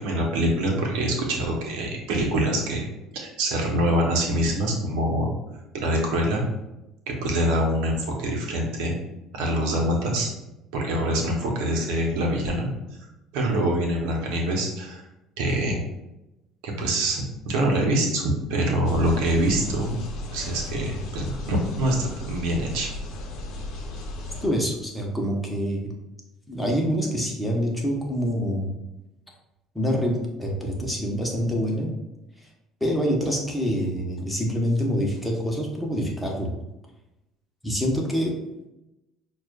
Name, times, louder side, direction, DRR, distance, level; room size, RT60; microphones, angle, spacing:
voice 1, 0.0-2.9 3.1-5.3 5.7-6.4 7.1-8.9 9.3-10.3 10.7-12.7 13.3-15.0 15.4-15.8 16.6-20.0 20.3-22.9, right 1 dB, 85° right, 0 dB, 0.9 m, -25 dB
sound 1, 18.8-24.5, left 2 dB, 65° left, 0.8 m, -35 dB
voice 2, 24.4-25.9 26.5-28.7 29.7-31.9 32.8-36.5 37.6-38.3, equal, 5° left, -1 dB, 1.0 m, -26 dB
6.2 x 2.4 x 2.4 m, 0.93 s
supercardioid pair, 95°, 0 cm